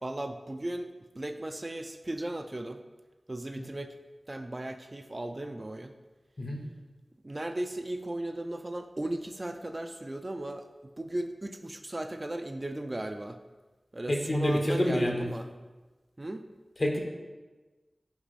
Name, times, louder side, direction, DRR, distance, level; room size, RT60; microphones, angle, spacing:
voice 1, 0.0-2.8 3.3-3.9 4.3-5.9 7.2-10.6 11.0-13.4 13.9-15.5 16.2-16.4, right 1 dB, 30° right, 7 dB, 0.4 m, -36 dB
voice 2, 14.1-15.3 16.8-17.0, left 1 dB, 50° left, 2 dB, 1.1 m, -27 dB
5.9 x 5.2 x 4.2 m, 1.2 s
wide cardioid pair, 70°, 0 cm